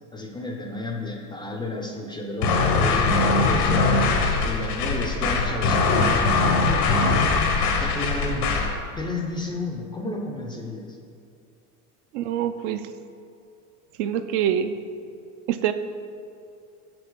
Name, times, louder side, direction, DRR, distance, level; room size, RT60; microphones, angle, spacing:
voice 1, 0.1-3.9 4.4-6.4 7.8-8.6 9.0-11.0, left 2 dB, 10° left, 1 dB, 0.4 m, -32 dB
sound 1, 2.4-8.8, left 3 dB, 85° left, 1.2 m, -21 dB
voice 2, 12.1-12.9 14.0-14.7 15.5-15.7, right 10 dB, 55° right, 10 dB, 0.5 m, -25 dB
7.0 x 6.0 x 3.7 m, 2.4 s
supercardioid pair, 115°, 45 cm